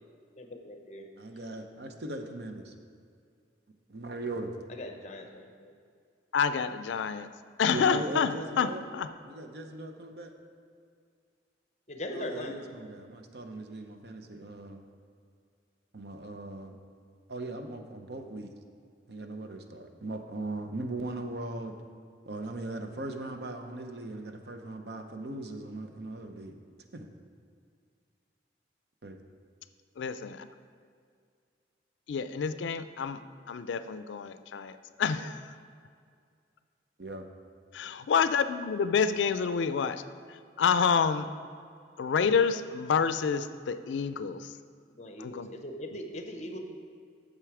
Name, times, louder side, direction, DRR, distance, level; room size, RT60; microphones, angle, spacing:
voice 1, 0.4-1.0 4.7-5.7 11.9-12.6 45.0-46.6, left 1 dB, 40° left, 5 dB, 0.8 m, -40 dB
voice 2, 1.2-2.7 3.9-4.5 7.7-8.8 9.2-10.3 12.1-14.8 15.9-16.8 17.3-18.5 19.1-21.8 22.3-26.6 26.9-27.1 29.0-29.2 37.0-37.3, right 2 dB, 60° right, 6 dB, 0.7 m, -39 dB
voice 3, 6.3-7.3 7.6-9.1 30.0-30.5 32.1-33.2 33.5-35.4 37.7-40.0 40.3-41.3 42.0-44.5 45.2-45.5 45.9-46.0, left 6 dB, 80° left, 12 dB, 0.4 m, -28 dB
9.1 x 6.9 x 4.8 m, 2.2 s
head